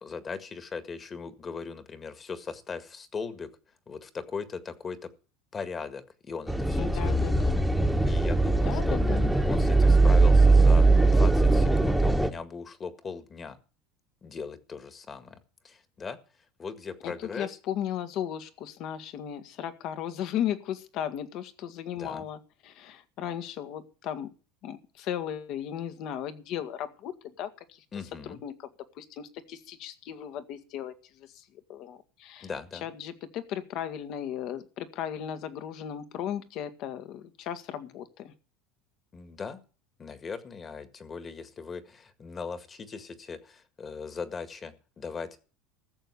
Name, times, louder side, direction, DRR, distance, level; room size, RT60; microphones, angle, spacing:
voice 1, 0.0-3.5 3.9-5.1 5.5-7.3 8.0-9.0 9.5-13.6 14.2-15.4 15.6-16.2 16.6-17.6 21.9-22.3 27.9-28.4 32.4-32.8 39.1-39.6 40.0-45.3, left 5 dB, 30° left, 11 dB, 1.8 m, -39 dB
sound 1, 6.5-12.3, right 2 dB, ahead, 1.4 m, -21 dB
voice 2, 6.8-7.7 8.6-9.3 17.0-24.3 24.6-27.1 27.4-27.8 28.2-28.7 29.0-32.5 32.8-38.3, left 10 dB, 60° left, 10 dB, 1.7 m, -36 dB
14.5 x 6.9 x 8.3 m, 0.37 s
supercardioid pair, 105°, 0 cm